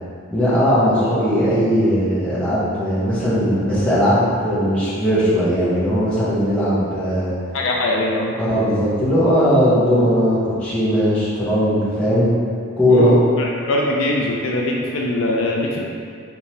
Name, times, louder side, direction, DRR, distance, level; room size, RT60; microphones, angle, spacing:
voice 1, 0.3-7.3 8.4-12.3 12.8-13.1, equal, 5° left, -11 dB, 0.9 m, -18 dB
voice 2, 7.5-8.3 12.9-15.8, left 1 dB, 65° left, -2 dB, 0.4 m, -21 dB
4.6 x 2.8 x 2.8 m, 2.3 s
head